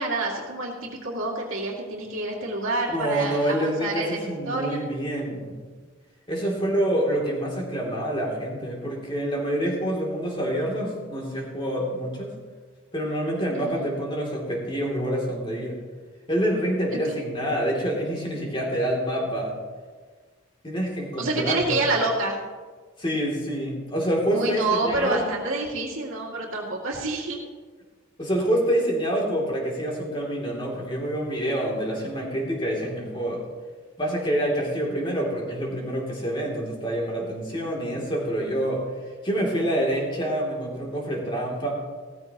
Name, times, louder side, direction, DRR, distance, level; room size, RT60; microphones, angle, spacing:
voice 1, 0.0-4.8 13.5-13.9 16.9-17.2 21.2-22.4 24.3-27.4, right 2 dB, 75° right, -3 dB, 2.2 m, -28 dB
voice 2, 2.9-5.6 6.3-12.3 12.9-15.8 16.3-19.5 20.6-21.8 23.0-25.2 28.2-33.4 34.0-38.8 39.2-41.7, right 1 dB, 25° left, -2 dB, 2.8 m, -27 dB
16.5 x 14.0 x 3.0 m, 1.5 s
head